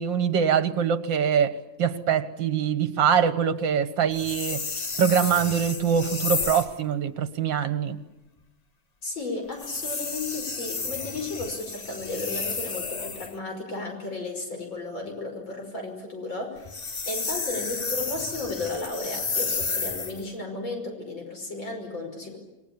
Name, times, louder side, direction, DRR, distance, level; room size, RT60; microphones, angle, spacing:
voice 1, 0.0-4.7 5.0-8.0, right 7 dB, 70° right, 2.1 m, -24 dB
sound 1, 4.1-6.8 9.5-13.4 16.6-20.2, left 4 dB, 35° left, 0.7 m, -32 dB
voice 2, 9.0-16.7 17.1-22.4, left 2 dB, 80° left, 6.4 m, -34 dB
27.0 x 23.0 x 8.5 m
omnidirectional pair, 2.1 m